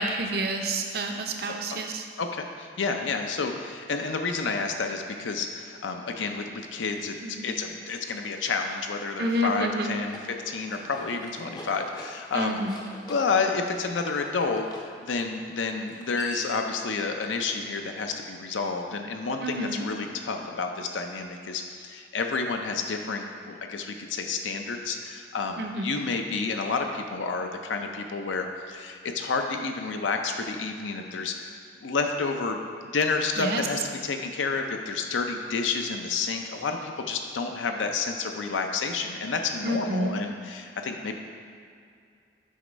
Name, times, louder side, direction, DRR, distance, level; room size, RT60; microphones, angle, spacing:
voice 1, 0.0-2.0 7.2-7.6 9.2-9.9 12.3-12.8 19.4-19.9 25.6-25.9 33.4-33.7 39.6-40.2, right 1 dB, 55° right, 4 dB, 0.5 m, -29 dB
voice 2, 2.2-7.2 7.4-12.6 13.1-41.2, left 4 dB, 85° left, 4 dB, 0.6 m, -30 dB
sound 1, 9.9-14.9 15.9-16.7, left 1 dB, 20° left, 0.5 m, -45 dB
7.8 x 3.1 x 5.1 m, 2.4 s
head